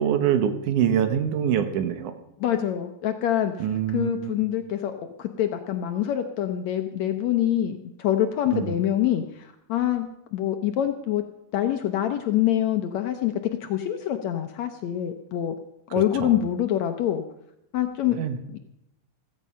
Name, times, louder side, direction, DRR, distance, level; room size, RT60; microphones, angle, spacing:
voice 1, 0.0-2.1 3.6-4.4 8.5-8.8 16.0-16.4 18.1-18.4, right 9 dB, 70° right, 9 dB, 2.4 m, -25 dB
voice 2, 2.4-3.7 3.9-4.9 5.2-11.2 11.5-13.3 13.6-15.6 15.9-17.2 17.7-18.2 18.5-18.6, left 11 dB, 70° left, 7 dB, 1.8 m, -25 dB
15.5 x 14.5 x 5.6 m, 0.82 s
omnidirectional pair, 3.9 m